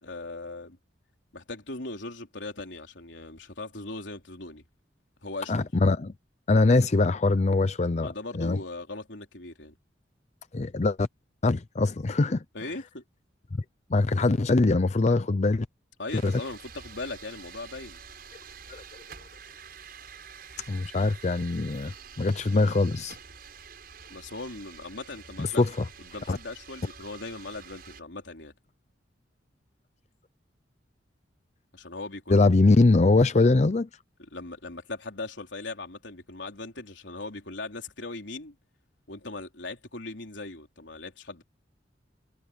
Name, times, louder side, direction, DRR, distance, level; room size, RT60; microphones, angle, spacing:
voice 1, 0.0-0.8 1.3-4.6 5.2-5.7 8.0-9.7 12.5-13.0 16.0-18.0 24.1-25.7 26.0-28.5 31.7-32.6 34.3-38.6 39.1-41.4, left 2 dB, 90° left, 3.7 m, -39 dB
voice 2, 5.5-6.1 6.5-8.6 10.5-11.1 11.4-12.7 13.9-15.7 16.1-16.4 18.7-18.8 20.7-23.2 25.4-25.9 26.3-26.4 32.3-33.9, left 3 dB, 40° left, 0.6 m, -23 dB
sound 1, 16.1-28.0, right 6 dB, 55° right, 6.9 m, -47 dB
head